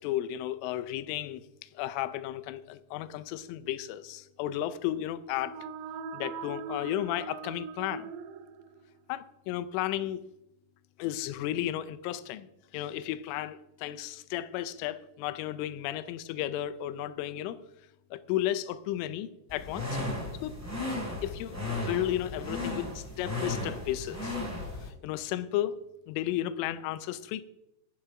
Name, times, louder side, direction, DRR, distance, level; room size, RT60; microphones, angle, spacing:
voice 1, 0.0-1.4 1.7-5.6 6.1-8.1 9.1-10.2 11.0-12.5 12.7-17.6 18.1-20.0 20.4-20.6 21.2-21.6 21.9-24.4 24.8-25.8 26.1-27.4, left 13 dB, 85° left, 13 dB, 3.2 m, -33 dB
sound 1, 5.2-9.0, right 5 dB, 80° right, 2.7 m, -41 dB
sound 2, 19.5-24.9, left 2 dB, 5° left, 2.9 m, -35 dB
17.5 x 6.0 x 5.7 m, 0.87 s
omnidirectional pair, 5.6 m